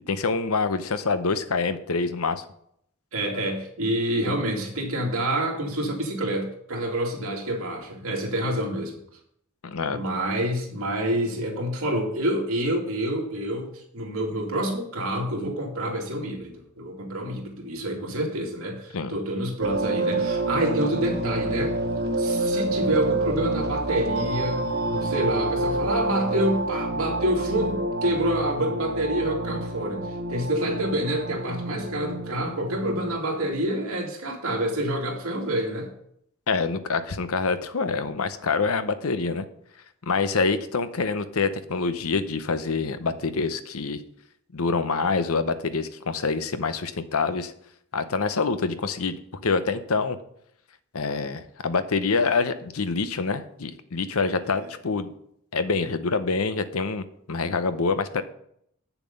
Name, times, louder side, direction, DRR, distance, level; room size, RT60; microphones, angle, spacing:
voice 1, 0.1-2.4 9.6-10.0 18.9-19.2 36.5-39.5 40.0-44.0 44.5-47.5 47.9-50.2 50.9-55.1 55.5-58.2, left 4 dB, 75° left, 11 dB, 0.8 m, -26 dB
voice 2, 3.1-9.0 9.9-21.8 22.2-35.9 54.5-54.7, right 1 dB, 70° right, -1 dB, 2.5 m, -27 dB
sound 1, 19.6-33.2, right 2 dB, 45° right, 0.8 m, -28 dB
8.3 x 7.1 x 5.4 m, 0.70 s
head